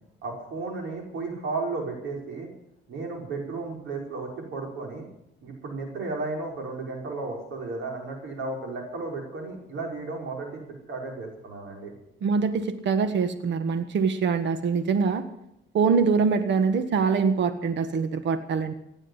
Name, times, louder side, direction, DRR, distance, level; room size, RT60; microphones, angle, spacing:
voice 1, 0.2-2.5 2.9-5.1 5.4-10.6 10.9-11.9, right 3 dB, 80° right, 1 dB, 5.3 m, -34 dB
voice 2, 12.2-15.2 15.7-18.7, right 5 dB, 65° right, 9 dB, 1.5 m, -24 dB
16.5 x 9.9 x 8.1 m, 0.80 s
cardioid pair, 90°, 20 cm